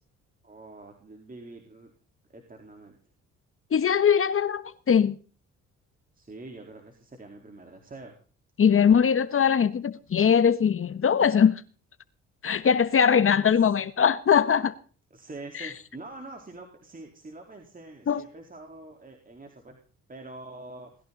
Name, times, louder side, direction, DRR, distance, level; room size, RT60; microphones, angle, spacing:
voice 1, 0.4-1.9 2.3-3.0 6.1-8.2 13.6-13.7 15.1-19.8 20.1-20.9, right 2 dB, 30° right, 4.2 m, -45 dB
voice 2, 3.7-5.2 8.6-11.6 12.4-14.7 15.6-15.7 18.1-18.2, left 7 dB, 45° left, 1.4 m, -21 dB
20.0 x 14.5 x 4.1 m
cardioid pair, 90°, 30 cm